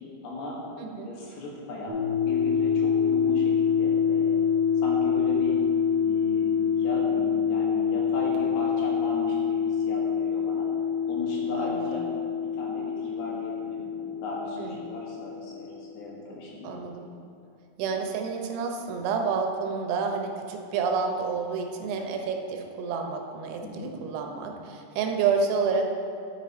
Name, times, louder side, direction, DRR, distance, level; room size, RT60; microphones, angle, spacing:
voice 1, 0.2-0.6 1.0-4.4 4.8-5.6 6.0-10.7 11.1-12.1 12.5-16.7 23.6-23.9, left 1 dB, 85° left, -4 dB, 3.5 m, -37 dB
voice 2, 0.8-1.1 11.6-11.9 14.6-14.7 16.6-17.1 17.8-25.9, right 5 dB, 90° right, 3 dB, 2.9 m, -29 dB
sound 1, 1.9-15.8, left 7 dB, 75° right, 2.1 m, -26 dB
10.0 x 5.7 x 4.2 m, 2.5 s
omnidirectional pair, 4.7 m